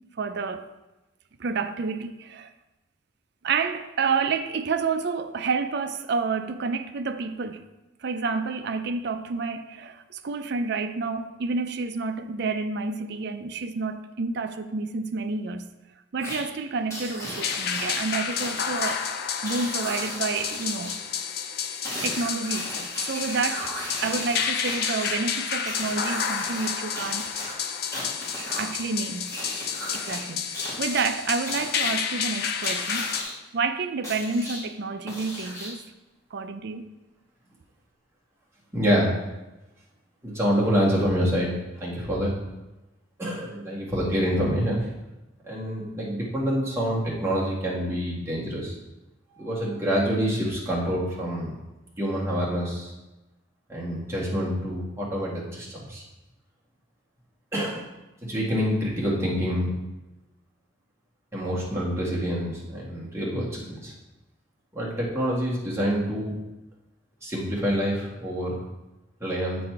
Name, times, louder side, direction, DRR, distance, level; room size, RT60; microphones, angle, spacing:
voice 1, 0.2-0.7 1.4-2.5 3.4-7.6 8.0-15.7 16.1-19.1 19.4-21.0 22.0-27.3 28.6-29.4 29.9-33.1 33.5-35.8 36.3-36.9, right 4 dB, 60° right, 0.5 m, -29 dB
sound 1, 16.2-16.4 16.9-18.9 19.4-20.9 21.8-25.1 25.7-26.7 27.0-28.7 29.3-30.2 30.5-31.0 31.5-31.9 32.6-33.3 34.0-34.6 35.1-35.8, left 1 dB, 15° left, 2.6 m, -36 dB
sound 2, 17.4-33.2, left 7 dB, 55° left, 0.5 m, -30 dB
voice 2, 38.7-39.1 40.2-41.5 41.8-42.3 43.2-44.9 45.5-48.7 49.3-51.5 52.0-52.9 53.7-56.0 57.5-57.8 58.2-59.7 61.3-63.9 64.7-66.3 67.2-68.6 69.2-69.6, equal, 15° right, 1.8 m, -26 dB
8.5 x 4.2 x 4.5 m
head